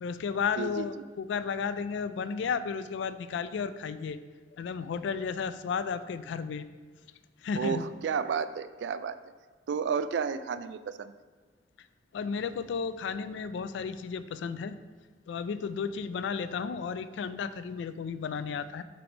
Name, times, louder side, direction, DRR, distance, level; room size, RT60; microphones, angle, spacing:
voice 1, 0.0-4.2 4.6-6.7 7.4-7.9 12.1-14.8 15.3-18.8, left 6 dB, 80° left, 13 dB, 0.3 m, -33 dB
voice 2, 7.6-9.2 9.7-11.1, right 6 dB, 75° right, 12 dB, 0.3 m, -31 dB
5.8 x 3.4 x 5.2 m, 1.4 s
head